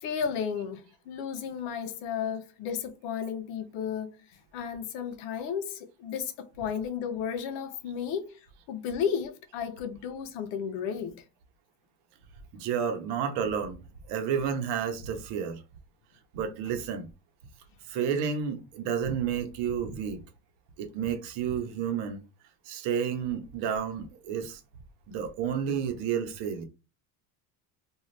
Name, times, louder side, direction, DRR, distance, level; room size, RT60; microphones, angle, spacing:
voice 1, 0.0-4.2 4.5-8.4 8.7-11.2, left 7 dB, 65° left, 0.8 m, -33 dB
voice 2, 12.5-13.8 14.1-15.6 16.3-17.1 17.9-20.2 20.8-22.2 22.7-24.6 25.1-26.7, right 7 dB, 65° right, 0.9 m, -31 dB
2.6 x 2.4 x 3.2 m
supercardioid pair, 115°, 46 cm